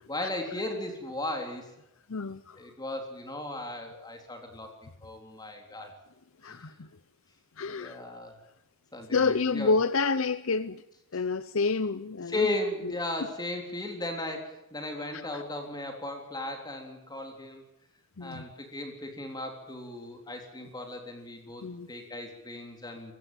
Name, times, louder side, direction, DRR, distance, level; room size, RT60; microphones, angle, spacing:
voice 1, 0.1-1.7 2.6-6.0 6.4-6.7 7.7-8.3 8.9-9.8 12.3-17.6 18.2-23.1, left 2 dB, 20° left, 3.6 m, -36 dB
voice 2, 2.1-2.7 6.4-6.9 7.6-8.0 9.1-10.8 11.1-12.5 15.1-15.4 18.2-18.5 21.6-21.9, left 4 dB, 70° left, 0.7 m, -29 dB
23.5 x 16.0 x 9.2 m
head